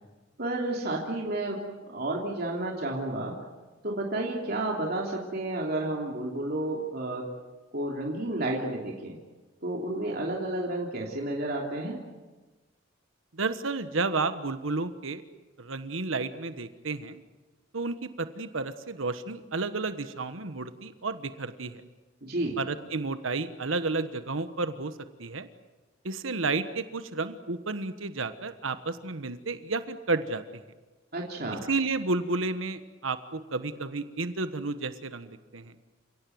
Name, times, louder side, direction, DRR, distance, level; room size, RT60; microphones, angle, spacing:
voice 1, 0.4-1.6 1.9-3.3 3.8-7.2 7.7-9.2 9.6-12.0 22.2-22.6 31.1-31.6, right 2 dB, 50° right, -2 dB, 3.2 m, -31 dB
voice 2, 13.3-15.2 15.6-17.2 17.7-21.8 22.6-24.9 25.2-25.5 26.0-30.6 31.7-35.7, right 3 dB, 80° right, 10 dB, 1.3 m, -31 dB
29.0 x 17.5 x 9.4 m, 1.2 s
head